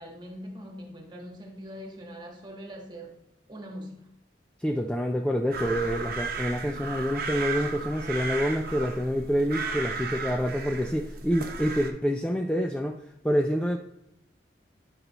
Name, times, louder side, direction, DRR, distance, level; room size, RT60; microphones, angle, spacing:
voice 1, 0.0-3.2 3.5-4.1, equal, 25° right, 1 dB, 1.5 m, -42 dB
voice 2, 4.6-13.0 13.2-13.8, equal, 5° left, 3 dB, 0.3 m, -27 dB
sound 1, 5.5-11.9, right 4 dB, 55° right, 0.9 m, -34 dB
12.0 x 5.4 x 3.0 m, 0.83 s
head